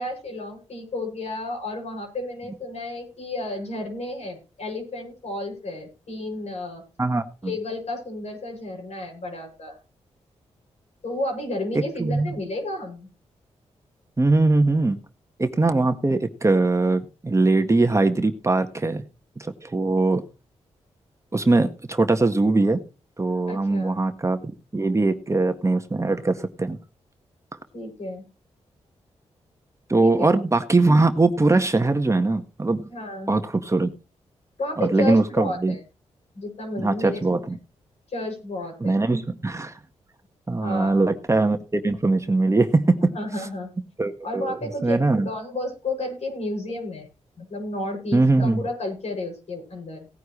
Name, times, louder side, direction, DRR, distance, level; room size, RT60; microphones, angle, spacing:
voice 1, 0.0-6.8 7.4-9.8 11.0-13.1 23.5-24.0 27.7-28.2 30.0-30.3 32.9-33.4 34.6-35.8 36.3-37.2 38.1-39.0 40.6-41.1 43.0-43.7 44.2-47.1 47.4-50.1, left 1 dB, 65° left, 2 dB, 7.1 m, -32 dB
voice 2, 7.0-7.5 11.7-12.3 14.2-15.0 15.4-19.0 19.4-20.2 21.3-22.8 23.2-26.8 29.9-32.9 33.3-33.9 34.8-35.7 36.8-37.6 38.8-39.7 40.5-43.1 44.0-44.6 44.8-45.3 48.1-48.6, right 2 dB, 25° right, 7 dB, 1.6 m, -21 dB
18.0 x 9.4 x 3.2 m, 0.32 s
cardioid pair, 60°, 12 cm